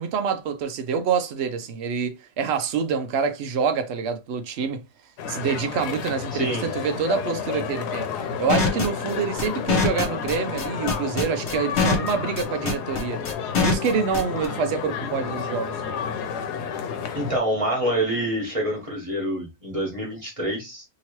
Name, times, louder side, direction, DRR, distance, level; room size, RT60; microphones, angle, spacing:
voice 1, 0.0-4.8 5.3-8.1 8.4-13.2 13.6-15.8, right 6 dB, 70° right, 0.6 m, -26 dB
sound 1, 5.2-17.4, left 7 dB, 90° left, 1.2 m, -31 dB
voice 2, 6.3-6.6 17.1-20.8, right 1 dB, 25° right, 1.0 m, -26 dB
sound 2, 8.5-14.5, left 4 dB, 50° left, 1.1 m, -23 dB
2.9 x 2.8 x 2.9 m
omnidirectional pair, 1.7 m